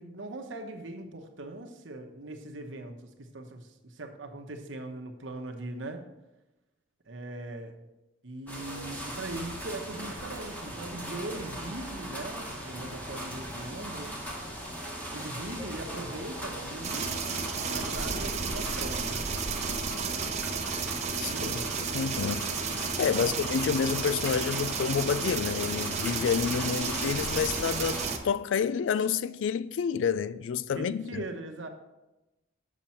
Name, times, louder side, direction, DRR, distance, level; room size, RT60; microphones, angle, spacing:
voice 1, 0.0-6.0 7.1-7.8 8.2-14.2 15.1-17.1 17.6-19.3 21.0-21.8 23.1-23.5 30.7-31.7, right 2 dB, 75° right, 1.0 m, -40 dB
sound 1, 8.5-28.2, equal, 10° left, 1.3 m, -39 dB
sound 2, 16.8-28.2, right 5 dB, 35° right, 0.7 m, -32 dB
voice 2, 21.2-21.5 21.9-31.2, left 6 dB, 75° left, 0.3 m, -29 dB
7.4 x 6.7 x 4.3 m
head